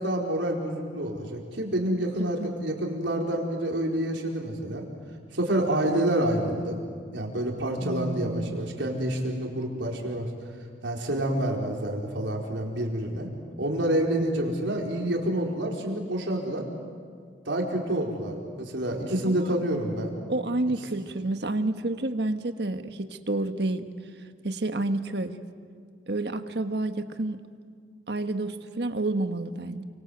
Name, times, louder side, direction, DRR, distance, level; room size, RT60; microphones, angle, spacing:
voice 1, 0.0-4.8 5.3-6.8 7.1-10.3 10.8-13.3 13.6-16.6 17.5-20.1, right 1 dB, 90° right, 0 dB, 4.6 m, -28 dB
voice 2, 2.2-2.5 7.8-8.6 19.2-19.5 20.3-23.9 24.4-25.3 26.1-27.4 28.1-29.8, right 2 dB, 65° right, 8 dB, 1.4 m, -29 dB
29.5 x 25.0 x 8.0 m, 2.1 s
head